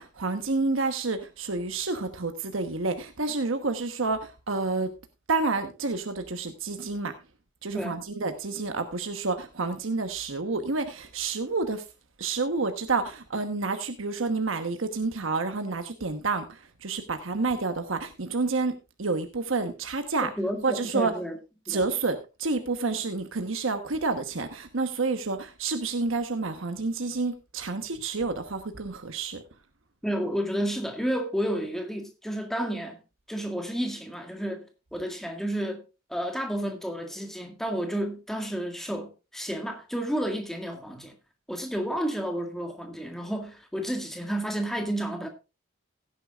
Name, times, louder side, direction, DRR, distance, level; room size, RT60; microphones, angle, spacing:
voice 1, 0.0-4.9 5.3-7.1 7.6-11.8 12.2-20.3 20.6-21.1 21.7-29.4, right 3 dB, 80° right, 1.1 m, -29 dB
voice 2, 20.2-21.4 21.7-21.8 30.0-33.0 33.3-35.8 36.1-41.2 41.5-45.3, equal, ahead, 1.8 m, -31 dB
16.5 x 9.9 x 2.4 m
head